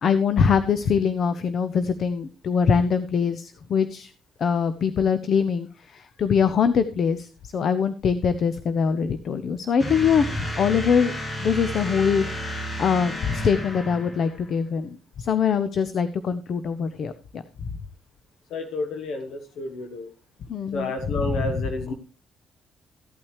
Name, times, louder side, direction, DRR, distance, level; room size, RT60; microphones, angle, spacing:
voice 1, 0.0-4.1 4.4-11.1 11.4-14.9 15.2-17.7 20.5-21.7, left 6 dB, 60° left, 12 dB, 0.7 m, -23 dB
sound 1, 9.8-14.5, equal, 30° left, 2.1 m, -32 dB
voice 2, 18.5-20.1 20.7-21.9, left 2 dB, 80° left, 6 dB, 1.1 m, -30 dB
15.0 x 8.8 x 3.2 m, 0.33 s
cardioid pair, 90°, 0 cm